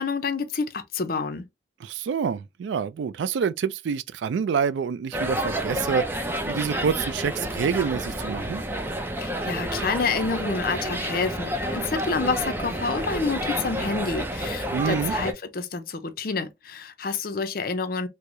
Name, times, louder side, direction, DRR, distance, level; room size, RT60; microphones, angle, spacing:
voice 1, 0.0-1.4 9.2-18.1, left 4 dB, 55° left, 0.5 m, -28 dB
voice 2, 1.8-8.6 14.7-15.1, right 6 dB, 80° right, 0.3 m, -27 dB
sound 1, 5.1-15.3, right 1 dB, 10° right, 0.4 m, -29 dB
4.5 x 2.0 x 2.5 m
head